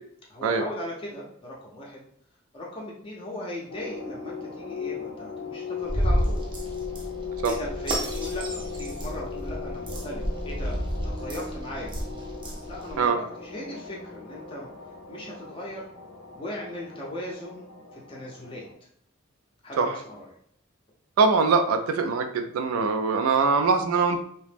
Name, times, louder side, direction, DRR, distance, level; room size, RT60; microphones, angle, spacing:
voice 1, 0.3-2.0 2.5-6.4 7.4-11.9 12.7-14.7 15.1-15.9 16.3-18.6 19.6-20.3, left 1 dB, 25° left, -3 dB, 0.5 m, -38 dB
sound 1, 3.7-18.7, left 5 dB, 85° left, 0.5 m, -38 dB
sound 2, 5.8-13.0, equal, 25° right, 0.5 m, -31 dB
voice 2, 21.2-24.2, right 4 dB, 85° right, 6 dB, 0.3 m, -22 dB
2.8 x 2.0 x 3.3 m, 0.68 s
head